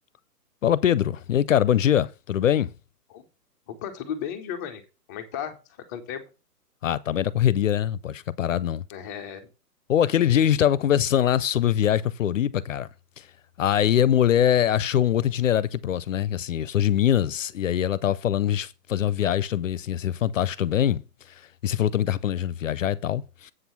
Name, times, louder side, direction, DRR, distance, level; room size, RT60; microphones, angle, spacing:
voice 1, 0.6-2.7 6.8-8.8 9.9-12.9 13.2-13.3 13.6-21.0 21.3-23.5, left 10 dB, 55° left, 0.7 m, -23 dB
voice 2, 3.7-4.8 5.1-5.6 5.9-6.2 8.9-9.5 10.3-10.4, left 8 dB, 10° left, 0.6 m, -34 dB
8.0 x 6.0 x 5.6 m
hypercardioid pair, 145°, 47 cm